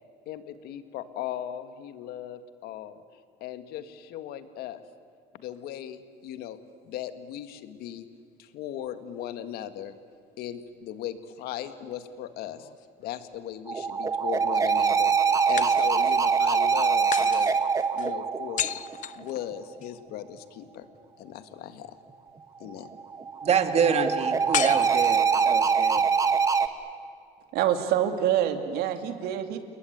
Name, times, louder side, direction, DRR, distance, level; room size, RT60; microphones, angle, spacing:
voice 1, 0.3-3.0 3.4-4.8 5.3-6.6 6.8-8.1 8.4-10.0 10.4-12.7 13.0-17.6 17.9-18.8 19.2-20.9 21.2-21.9 22.6-22.9, left 10 dB, 70° left, 10 dB, 1.9 m, -38 dB
sound 1, 12.5-13.5 15.6-16.3 17.1-20.0 24.5-25.6, left 12 dB, 50° left, 0.7 m, -35 dB
sound 2, 13.7-19.3 22.8-26.7, right 6 dB, 20° right, 1.5 m, -24 dB
voice 2, 23.4-26.0, right 6 dB, 40° right, 8 dB, 2.4 m, -26 dB
voice 3, 27.5-29.6, right 10 dB, 75° right, 7 dB, 2.6 m, -26 dB
29.5 x 21.0 x 9.4 m, 2.2 s
cardioid pair, 120°, 16 cm